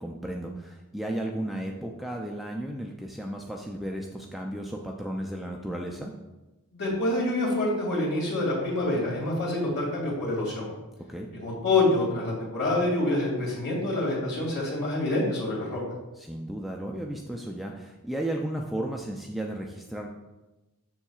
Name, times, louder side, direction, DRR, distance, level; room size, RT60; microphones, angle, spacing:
voice 1, 0.0-6.1 11.1-11.3 16.2-20.1, right 1 dB, ahead, 0 dB, 0.4 m, -34 dB
voice 2, 6.7-10.7 11.3-15.8, left 2 dB, 50° left, -4 dB, 2.2 m, -26 dB
7.1 x 6.5 x 2.3 m, 1.0 s
head